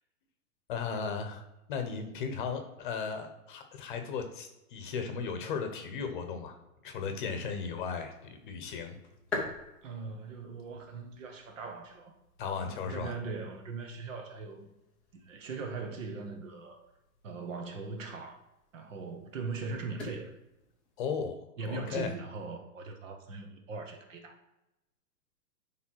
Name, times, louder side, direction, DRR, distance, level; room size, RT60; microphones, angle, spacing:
voice 1, 0.7-1.4 1.7-6.6 6.8-9.0 12.4-13.2 21.0-21.4 21.7-22.1, left 5 dB, 35° left, 1.0 m, -36 dB
sound 1, 6.9-21.0, left 3 dB, ahead, 0.5 m, -47 dB
voice 2, 9.8-12.1 12.6-14.7 15.1-16.8 17.2-18.4 18.7-20.3 21.6-24.4, right 4 dB, 55° right, 1.5 m, -40 dB
10.5 x 3.5 x 4.6 m
hypercardioid pair, 160°, 46 cm